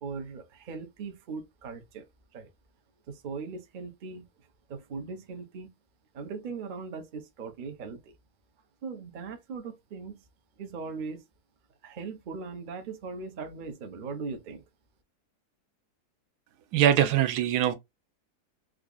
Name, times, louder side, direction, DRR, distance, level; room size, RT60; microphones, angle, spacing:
voice 1, 0.0-2.1 2.3-2.5 3.1-4.3 4.7-5.7 6.1-8.1 8.8-10.2 10.6-11.2 11.8-14.6, right 4 dB, 55° right, 0.5 m, -39 dB
voice 2, 16.7-17.7, right 10 dB, 85° right, 1.2 m, -22 dB
4.8 x 2.4 x 2.3 m
omnidirectional pair, 1.7 m